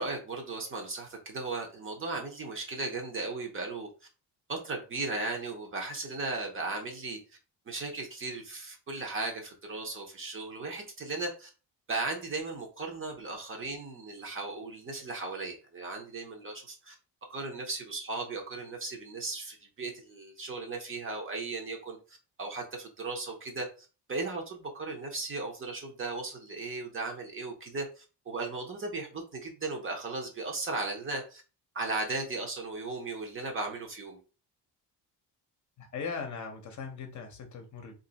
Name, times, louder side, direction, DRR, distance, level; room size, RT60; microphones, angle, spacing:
voice 1, 0.0-3.9 4.5-7.2 7.7-11.5 11.9-16.9 17.3-31.4 31.7-34.2, right 3 dB, 30° right, 0.8 m, -36 dB
voice 2, 35.8-38.0, left 5 dB, 40° left, 0.8 m, -39 dB
2.6 x 2.6 x 4.0 m
cardioid pair, 140°, 43 cm